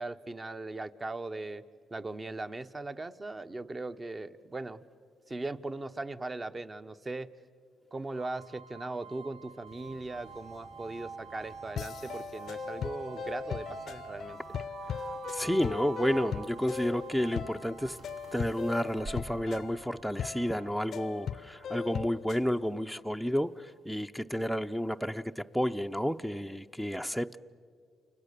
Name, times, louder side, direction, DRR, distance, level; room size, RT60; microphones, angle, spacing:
voice 1, 0.0-1.6 1.9-4.8 5.3-7.3 7.9-14.6, right 2 dB, 25° right, 1.0 m, -39 dB
sound 1, 8.1-23.1, right 5 dB, 85° right, 1.0 m, -47 dB
sound 2, 9.7-20.1, right 3 dB, 70° right, 3.3 m, -53 dB
sound 3, 11.8-22.5, left 8 dB, 65° left, 0.6 m, -39 dB
voice 2, 15.0-18.0 18.3-27.4, equal, ahead, 0.6 m, -31 dB
29.5 x 29.0 x 6.8 m
cardioid pair, 90°, 0 cm